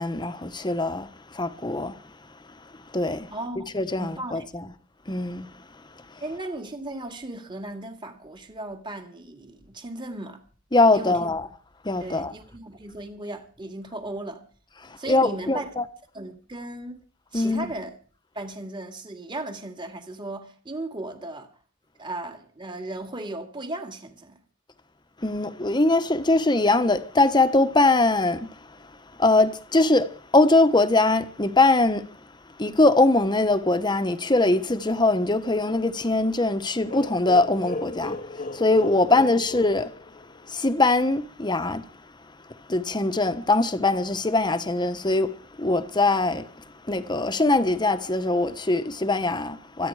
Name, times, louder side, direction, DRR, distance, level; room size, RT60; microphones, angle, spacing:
voice 1, 0.0-2.0 2.9-3.3 3.7-4.7 5.1-5.6 6.1-6.2 10.7-11.5 11.8-12.3 14.8-15.8 17.3-17.7 25.2-28.9 29.2-32.1 32.6-39.9 40.5-41.8 42.5-49.9, left 2 dB, 25° left, 1.2 m, -22 dB
voice 2, 3.3-3.7 4.0-4.5 6.2-10.4 10.9-11.2 12.0-14.4 15.0-15.7 16.1-17.0 17.3-17.9 18.3-21.5 22.0-24.4 39.2-39.3, right 2 dB, 25° right, 2.4 m, -36 dB
sound 1, 36.9-40.6, left 2 dB, 45° left, 0.9 m, -36 dB
25.5 x 9.9 x 4.9 m
head